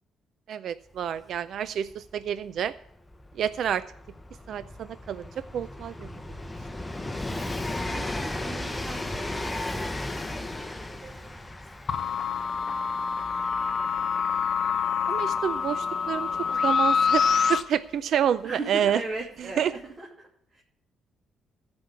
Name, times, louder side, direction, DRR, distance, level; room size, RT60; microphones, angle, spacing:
voice 1, 0.5-2.7 3.3-3.8 4.5-6.1 15.1-19.0 19.6-19.7, right 9 dB, 70° right, 14 dB, 0.4 m, -28 dB
Train, 1.0-1.1 1.3-17.9 18.9-19.0, left 2 dB, 15° left, 0.9 m, -36 dB
voice 2, 7.3-11.3 15.1-15.3 18.4-20.6, right 2 dB, 35° right, -3 dB, 2.7 m, -40 dB
sound 1, 11.9-17.6, left 6 dB, 55° left, 0.9 m, -26 dB
15.0 x 5.3 x 7.9 m, 0.75 s
cardioid pair, 90°, 0 cm